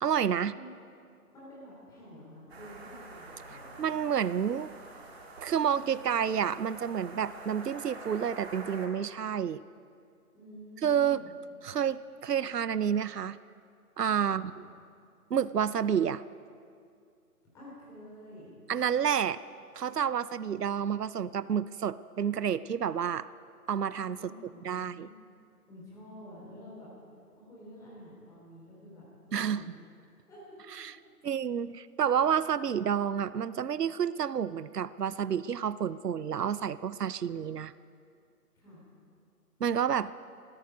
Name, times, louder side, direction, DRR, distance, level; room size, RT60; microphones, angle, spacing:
voice 1, 0.0-0.5 3.8-4.7 5.4-9.6 10.8-11.2 11.6-13.4 14.0-14.5 15.3-16.2 18.7-19.4 19.7-23.3 23.7-24.2 24.6-25.1 29.3-29.6 30.8-30.9 31.2-37.7 39.6-40.1, right 8 dB, 75° right, 17 dB, 0.6 m, -29 dB
voice 2, 1.2-3.9 10.3-11.3 14.2-14.4 17.5-18.5 24.2-25.1 25.7-26.9 27.4-29.9 30.3-30.9 38.5-38.8, equal, 5° left, -7 dB, 3.4 m, -50 dB
sound 1, 2.5-8.9, right 2 dB, 40° right, 2.2 m, -47 dB
20.5 x 13.5 x 5.1 m, 2.3 s
figure-of-eight pair, 150°, 48 cm